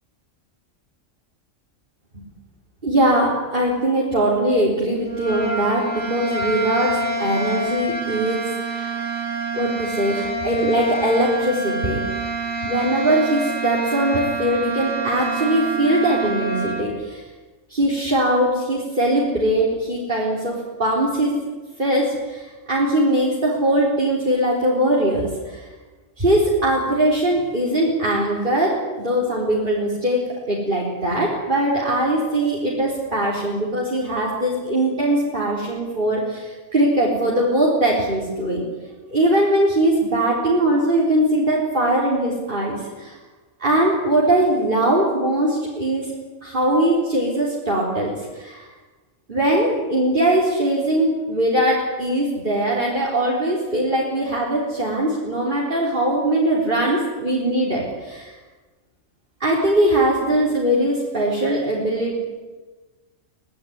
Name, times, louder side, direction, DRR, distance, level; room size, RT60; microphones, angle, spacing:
voice 1, 2.8-8.4 8.7-9.0 9.5-12.0 12.6-17.2 17.7-21.4 21.8-25.6 26.2-38.6 39.1-43.2 43.6-46.1 46.4-48.7 49.3-58.3 59.4-62.2, right 1 dB, 40° right, -5 dB, 4.4 m, -21 dB
sound 1, 5.0-16.9, right 2 dB, 90° right, 5.4 m, -27 dB
23.0 x 18.5 x 9.6 m, 1.3 s
omnidirectional pair, 1.3 m